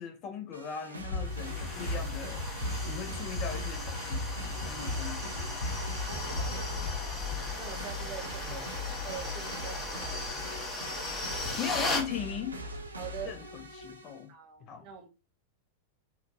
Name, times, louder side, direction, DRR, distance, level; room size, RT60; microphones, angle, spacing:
voice 1, 0.0-5.5 6.3-6.9 8.4-8.7 11.6-12.6 13.2-14.3 14.6-14.9, left 8 dB, 40° left, 0.6 m, -39 dB
sound 1, 0.5-14.2, equal, 90° right, 0.5 m, -42 dB
sound 2, 1.1-7.7, left 1 dB, 70° left, 0.8 m, -37 dB
sound 3, 1.2-12.1, left 3 dB, 15° left, 0.9 m, -37 dB
voice 2, 4.7-5.2 6.4-10.5 13.0-13.4 14.3-15.1, right 9 dB, 45° right, 0.9 m, -45 dB
2.8 x 2.2 x 2.5 m
figure-of-eight pair, 95°, 0 cm